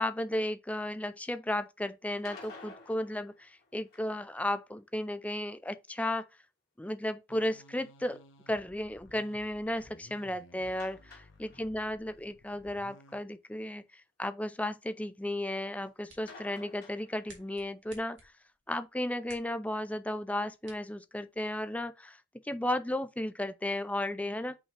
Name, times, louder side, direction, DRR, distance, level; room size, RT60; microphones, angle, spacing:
voice 1, 0.0-6.3 6.8-18.3 18.7-22.2 22.4-24.6, left 1 dB, 5° left, 0.5 m, -34 dB
sound 1, 2.1-4.3 10.7-11.9 12.2-12.3 12.7-12.8 16.3-17.6, left 3 dB, 55° left, 2.9 m, -52 dB
sound 2, 7.3-13.2, left 1 dB, 80° left, 1.2 m, -57 dB
sound 3, 15.7-21.7, right 3 dB, 75° right, 2.3 m, -60 dB
5.6 x 5.6 x 3.3 m
head